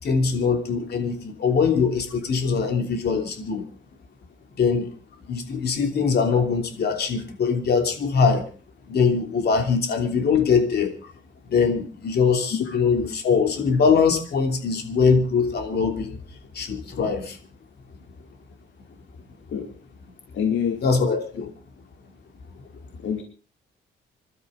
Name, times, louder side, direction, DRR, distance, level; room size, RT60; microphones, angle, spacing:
voice 1, 0.0-3.6 4.5-4.9 5.3-8.4 8.9-10.9 11.5-16.2 16.5-17.4 20.8-21.5, left 5 dB, 55° left, 4 dB, 3.2 m, -22 dB
voice 2, 20.3-20.8 23.0-23.2, left 8 dB, 70° left, 3 dB, 2.5 m, -26 dB
26.5 x 12.5 x 3.9 m, 0.37 s
cardioid pair, 130°, 21 cm